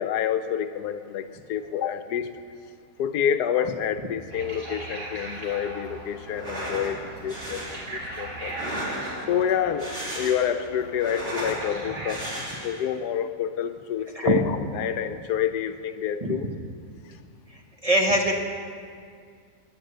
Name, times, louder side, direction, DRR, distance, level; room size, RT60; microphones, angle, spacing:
voice 1, 0.0-2.3 3.0-8.6 9.3-16.5, left 9 dB, 80° left, 10 dB, 1.2 m, -28 dB
sound 1, 4.3-12.4, right 2 dB, 70° right, 2.9 m, -39 dB
sound 2, 6.3-6.9 7.3-7.8 8.4-9.3 9.7-10.6 10.9-11.6 12.1-12.8, right 1 dB, 40° right, 3.5 m, -34 dB
voice 2, 17.5-18.3, right 1 dB, 25° right, 1 dB, 1.1 m, -23 dB
15.0 x 10.0 x 6.8 m, 2.2 s
omnidirectional pair, 1.7 m